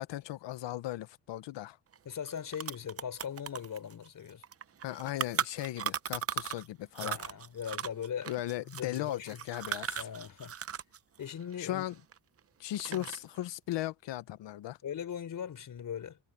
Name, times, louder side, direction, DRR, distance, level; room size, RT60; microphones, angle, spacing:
voice 1, 0.0-1.8 4.8-7.2 8.3-10.1 11.6-11.9 12.6-14.8, left 14 dB, 85° left, 1.1 m, -37 dB
sound 1, 1.9-2.0 2.3-6.7 6.9-11.0 11.2-12.4 12.7-13.4, right 8 dB, 35° right, 0.7 m, -37 dB
voice 2, 2.1-4.4 7.0-8.3 8.7-9.4 10.0-10.6 11.2-11.8 12.9-13.1 14.8-16.2, left 8 dB, 50° left, 3.8 m, -40 dB
cardioid pair, 130°, 42 cm